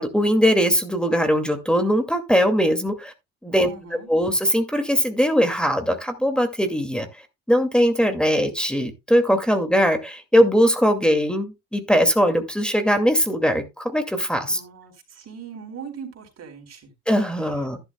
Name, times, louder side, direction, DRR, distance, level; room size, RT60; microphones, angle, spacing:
voice 1, 0.0-3.1 3.4-3.7 4.1-7.1 7.5-14.6 17.1-17.8, equal, 5° left, 6 dB, 2.3 m, -20 dB
voice 2, 3.5-4.1 14.5-16.9 17.4-17.5, right 6 dB, 55° right, 4 dB, 4.5 m, -40 dB
12.0 x 11.0 x 2.3 m, 0.23 s
cardioid pair, 90°, 30 cm